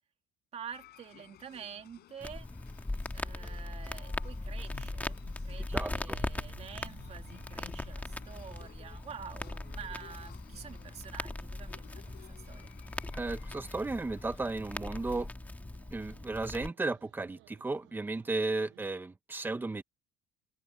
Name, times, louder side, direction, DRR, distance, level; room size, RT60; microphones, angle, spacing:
voice 1, 0.5-2.5 3.1-12.8, right 8 dB, 35° right, 2.5 m, -48 dB
sound 1, 0.7-15.3, left 13 dB, 55° left, 7.2 m, -56 dB
Crackle, 2.2-16.7, left 2 dB, 10° left, 1.6 m, -40 dB
voice 2, 5.7-6.2 13.1-15.3 15.9-19.8, right 3 dB, 10° right, 1.1 m, -34 dB
sound 2, 6.1-18.9, right 19 dB, 80° right, 6.6 m, -60 dB
cardioid pair, 155°, 19 cm